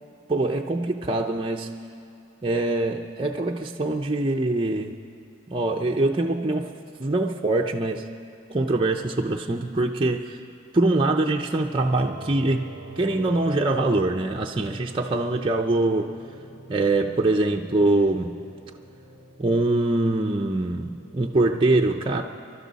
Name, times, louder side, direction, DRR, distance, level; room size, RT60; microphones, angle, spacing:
voice 1, 0.3-1.7 2.4-5.0 5.5-6.7 7.0-8.1 8.5-10.4 10.7-16.1 16.7-18.4 19.4-22.2, right 2 dB, 25° right, 1 dB, 0.5 m, -23 dB
sound 1, 11.8-21.3, right 1 dB, 50° left, 3.4 m, -45 dB
28.5 x 12.0 x 4.1 m, 2.5 s
head